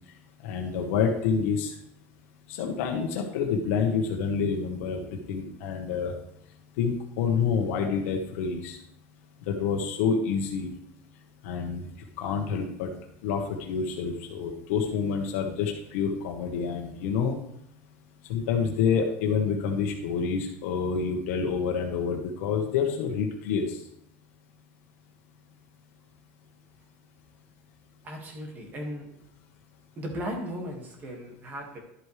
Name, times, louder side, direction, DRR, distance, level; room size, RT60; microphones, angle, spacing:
voice 1, 0.4-1.8 2.5-6.1 6.8-8.8 9.5-10.7 11.4-11.8 12.2-12.9 13.2-17.4 18.3-23.8, left 6 dB, 85° left, 1 dB, 1.3 m, -28 dB
voice 2, 28.0-29.1 30.0-31.8, equal, 25° right, 1 dB, 2.0 m, -36 dB
11.5 x 7.9 x 3.3 m, 0.77 s
cardioid pair, 170°, 7 cm